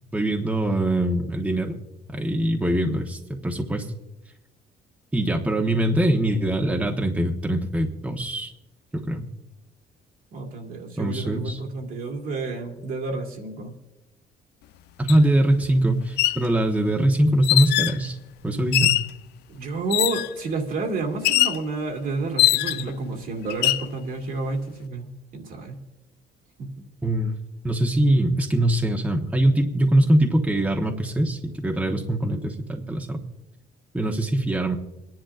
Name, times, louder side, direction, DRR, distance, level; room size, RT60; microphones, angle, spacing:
voice 1, 0.1-1.8 2.1-3.9 5.1-8.5 8.9-9.2 11.0-11.6 15.0-18.2 18.4-19.0 27.0-27.3 27.6-33.2 33.9-34.8, right 1 dB, 10° right, 1 dB, 1.1 m, -22 dB
voice 2, 10.3-13.7 19.5-25.8 26.6-26.8, right 3 dB, 55° right, 1 dB, 2.1 m, -30 dB
sound 1, 15.1-15.2 16.0-16.4 17.4-18.0 18.7-19.1 19.9-20.3 21.2-21.6 22.4-22.9 23.5-23.9, left 16 dB, 80° left, 0.4 m, -21 dB
27.0 x 10.5 x 2.5 m, 0.92 s
cardioid pair, 110°, 17 cm